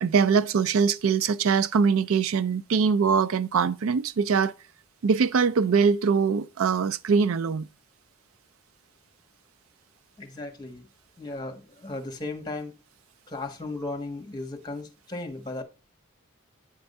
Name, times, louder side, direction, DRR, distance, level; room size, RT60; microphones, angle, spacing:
voice 1, 0.0-4.5 5.0-7.7, right 5 dB, 85° right, 0.4 m, -22 dB
voice 2, 10.2-10.9 11.2-12.7 13.3-15.6, left 2 dB, 20° left, 1.1 m, -36 dB
8.8 x 3.5 x 5.3 m
head